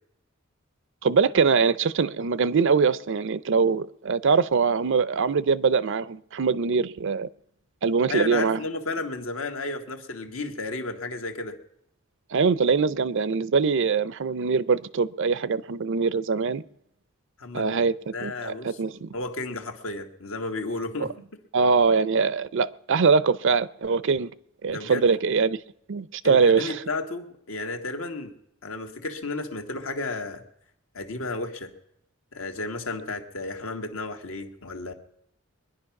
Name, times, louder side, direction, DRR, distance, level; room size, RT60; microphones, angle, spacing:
voice 1, 1.0-7.3 7.8-8.6 12.3-16.6 17.5-19.1 21.0-21.1 21.5-24.3 24.6-25.6 25.9-26.8, right 5 dB, 60° right, 0.5 m, -23 dB
voice 2, 8.1-11.6 17.4-17.8 18.1-18.8 19.1-21.1 24.7-25.0 26.2-28.3 28.6-30.4 30.9-31.7 32.3-34.9, left 3 dB, 70° left, 1.7 m, -33 dB
22.5 x 10.5 x 5.9 m
head